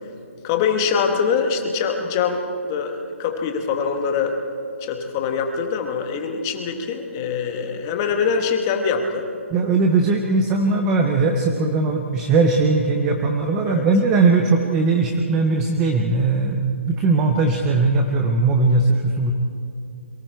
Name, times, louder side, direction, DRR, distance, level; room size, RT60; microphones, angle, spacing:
voice 1, 0.4-4.4 4.8-9.3 13.7-13.9, left 6 dB, 15° left, 4 dB, 1.1 m, -23 dB
voice 2, 9.5-19.3, right 3 dB, 5° right, 4 dB, 0.4 m, -19 dB
28.0 x 23.0 x 4.5 m, 2.6 s
hypercardioid pair, 180°, 7 cm